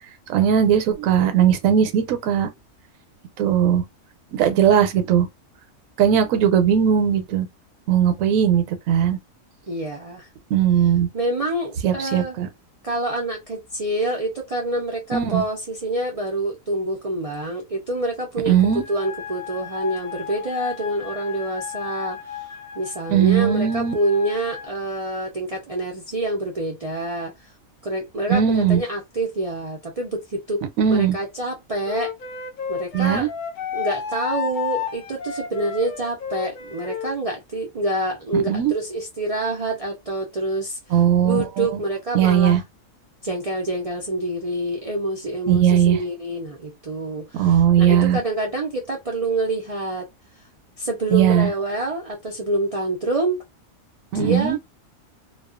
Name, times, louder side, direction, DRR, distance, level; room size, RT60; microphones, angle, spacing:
voice 1, 0.3-2.5 3.4-3.8 4.3-5.3 6.0-7.5 7.9-9.2 10.5-11.1 11.8-12.5 15.1-15.4 18.5-18.8 23.1-23.9 28.3-28.8 30.8-31.2 32.9-33.3 38.3-38.7 40.9-41.7 42.1-42.6 45.5-46.0 47.3-48.2 51.1-51.5 54.1-54.6, right 9 dB, 80° right, 1.0 m, -18 dB
voice 2, 9.7-10.3 11.1-12.4 12.8-18.6 18.9-22.5 22.8-27.3 27.8-32.1 32.7-33.3 33.7-40.8 41.2-42.6 43.2-50.0 50.8-53.4 54.1-54.6, right 2 dB, 55° right, 0.4 m, -27 dB
sound 1, 18.5-24.7, left 9 dB, 15° left, 0.8 m, -36 dB
Wind instrument woodwind instrument, 31.9-37.2, left 7 dB, 65° left, 0.5 m, -31 dB
2.3 x 2.3 x 2.3 m
omnidirectional pair, 1.4 m